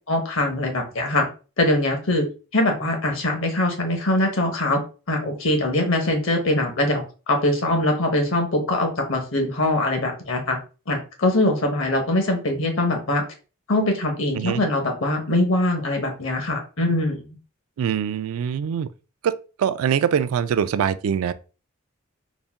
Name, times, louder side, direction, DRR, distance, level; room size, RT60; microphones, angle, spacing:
voice 1, 0.1-1.3 1.6-2.3 2.5-4.8 5.1-10.6 10.9-13.2 13.7-17.3, left 1 dB, 65° left, 1.0 m, -22 dB
voice 2, 17.8-18.9 19.2-21.3, right 8 dB, 85° right, 0.3 m, -23 dB
4.0 x 2.1 x 3.5 m
head